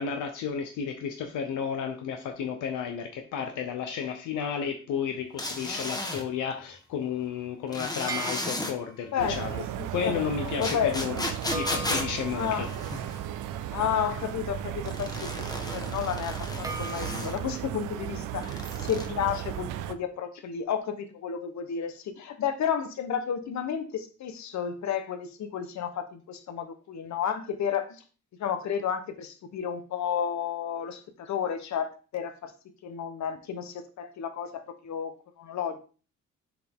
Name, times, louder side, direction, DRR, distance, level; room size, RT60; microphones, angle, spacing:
voice 1, 0.0-9.6 9.9-11.3 11.5-12.7, left 7 dB, 85° left, 5 dB, 0.9 m, -32 dB
sound 1, 5.4-6.2 7.7-8.7 10.6-13.2 14.9-17.4 18.4-19.1, left 1 dB, 15° left, 1.3 m, -34 dB
sound 2, 8.1-9.1 11.5-14.6 16.6-17.6, right 2 dB, 10° right, 1.0 m, -40 dB
voice 2, 9.1-11.0 12.3-12.7 13.7-28.0 28.4-32.5 32.8-35.8, left 8 dB, 65° left, 8 dB, 1.2 m, -32 dB
sound 3, 9.2-19.9, right 11 dB, 90° right, 0.6 m, -35 dB
7.0 x 5.0 x 3.7 m, 0.36 s
cardioid pair, 90°, 30 cm